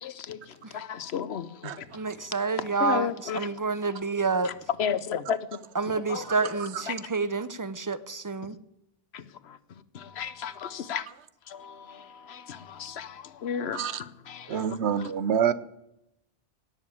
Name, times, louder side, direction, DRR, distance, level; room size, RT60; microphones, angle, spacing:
voice 1, 0.0-3.6 4.4-5.6 5.9-6.5 6.9-7.1 9.1-11.0 11.5-15.1, left 8 dB, 75° left, 1.1 m, -34 dB
voice 2, 1.9-4.5 5.8-8.6, right 4 dB, 20° right, 0.6 m, -29 dB
voice 3, 14.5-15.5, right 8 dB, 90° right, 1.1 m, -26 dB
17.5 x 7.0 x 8.5 m
omnidirectional pair, 1.1 m